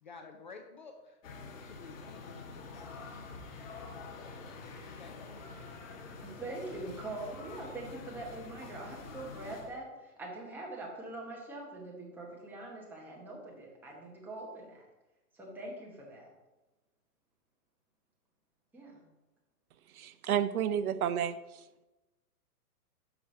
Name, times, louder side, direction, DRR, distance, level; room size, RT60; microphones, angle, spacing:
voice 1, 0.0-1.2 1.7-3.6 4.2-4.6 5.0-5.9, left 4 dB, 35° left, 4 dB, 0.4 m, -53 dB
sound 1, 1.2-9.8, left 4 dB, 55° left, 1.5 m, -47 dB
voice 2, 6.2-14.9 15.3-16.3 18.7-19.0, right 2 dB, 5° right, -3 dB, 0.9 m, -43 dB
voice 3, 19.9-21.4, right 9 dB, 65° right, 13 dB, 0.6 m, -30 dB
6.1 x 4.8 x 5.7 m, 1.0 s
hypercardioid pair, 155°, 46 cm